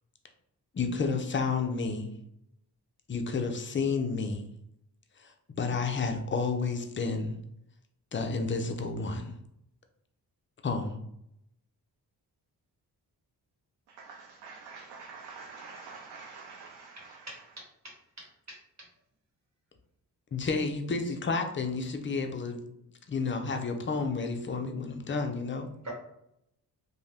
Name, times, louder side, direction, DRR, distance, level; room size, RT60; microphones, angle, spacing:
voice 1, 0.7-2.1 3.1-4.5 5.2-7.4 8.1-9.3 10.6-11.0 20.3-22.6 23.1-25.7, left 4 dB, 30° left, 0.5 m, -31 dB
voice 2, 14.0-17.3, right 4 dB, 75° right, 0.5 m, -46 dB
voice 3, 17.3-18.6 25.8-25.9, right 1 dB, 40° right, 1.1 m, -45 dB
2.6 x 2.2 x 3.3 m
cardioid pair, 55°, 41 cm